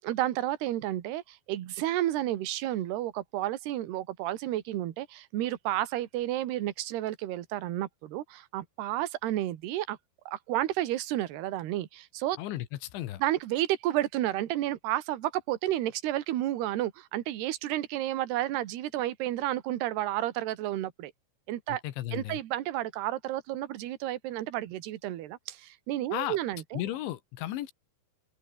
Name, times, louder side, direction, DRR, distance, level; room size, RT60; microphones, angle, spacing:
voice 1, 0.0-10.0 10.3-12.4 13.2-21.1 21.5-21.8 22.1-26.8, right 14 dB, 70° right, 3.5 m, -31 dB
voice 2, 21.7-22.4 26.1-26.4 26.7-27.7, left 14 dB, 80° left, 3.8 m, -34 dB
open air
omnidirectional pair, 5.2 m